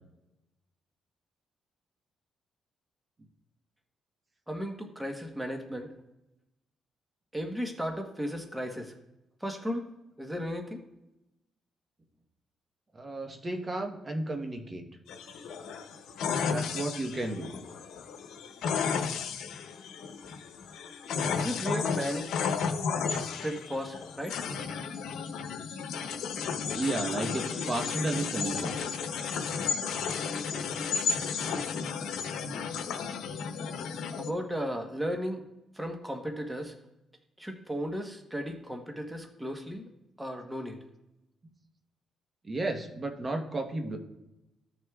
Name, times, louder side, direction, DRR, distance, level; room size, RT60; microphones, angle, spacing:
voice 1, 4.5-5.9 7.3-8.9 9.4-9.9 10.2-10.8 21.4-22.5 23.2-24.3 34.2-35.4 35.7-36.7 37.4-39.9 40.2-40.8, equal, 5° right, 3 dB, 1.1 m, -35 dB
voice 2, 12.9-14.8 16.5-17.5 26.7-28.9 42.4-44.0, right 2 dB, 30° right, 4 dB, 1.1 m, -33 dB
sound 1, 15.1-34.3, left 6 dB, 80° left, 0.9 m, -33 dB
15.5 x 6.3 x 2.4 m, 0.93 s
cardioid pair, 90°, 0 cm